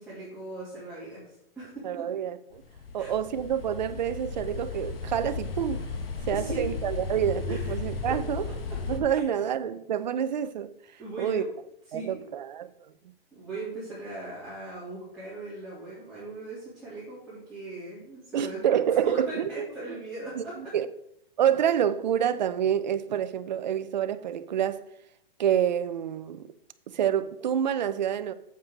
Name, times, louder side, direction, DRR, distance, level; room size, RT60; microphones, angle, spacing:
voice 1, 0.0-2.1 3.0-3.1 6.3-6.7 7.5-8.2 9.1-9.3 11.0-11.5 11.9-12.2 13.3-18.6 19.0-20.7, right 2 dB, ahead, 3.3 m, -39 dB
voice 2, 1.8-2.6 2.9-5.8 6.3-8.5 8.9-10.7 11.2-11.4 11.9-12.7 18.3-20.0 20.4-20.9 21.4-24.8 25.4-26.5 26.9-28.3, right 9 dB, 50° right, 0.7 m, -27 dB
sound 1, 2.5-9.0, left 4 dB, 80° left, 1.9 m, -35 dB
8.4 x 7.5 x 4.8 m
hypercardioid pair, 165°, 29 cm